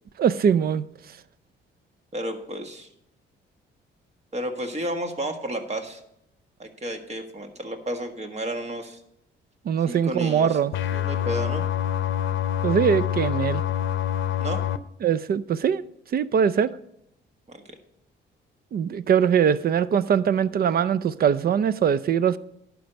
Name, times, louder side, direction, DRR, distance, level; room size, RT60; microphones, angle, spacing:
voice 1, 0.2-0.8 9.6-10.7 12.6-13.6 15.0-15.8 16.1-16.7 18.7-22.4, right 8 dB, 50° right, 0.5 m, -22 dB
voice 2, 2.1-2.9 4.3-6.0 6.6-9.0 9.9-10.6 10.9-11.6 14.4-14.6 17.5-17.6, right 1 dB, 35° right, 1.6 m, -32 dB
sound 1, 10.7-14.8, left 11 dB, 75° left, 0.6 m, -26 dB
11.5 x 4.7 x 7.9 m
cardioid pair, 90°, 20 cm